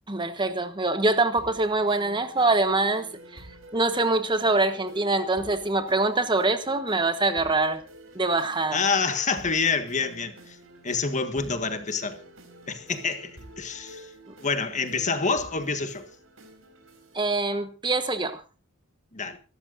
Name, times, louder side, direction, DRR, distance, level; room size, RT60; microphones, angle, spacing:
voice 1, 0.1-3.1 3.3-3.5 3.7-7.8 8.1-8.8 17.1-18.4, right 2 dB, 25° right, 1.2 m, -24 dB
sound 1, 1.4-17.4, right 1 dB, 85° right, 4.9 m, -48 dB
voice 2, 8.7-10.6 10.8-12.2 12.7-14.1 14.4-16.1 19.1-19.4, left 4 dB, 35° left, 1.6 m, -27 dB
25.5 x 13.0 x 2.6 m
head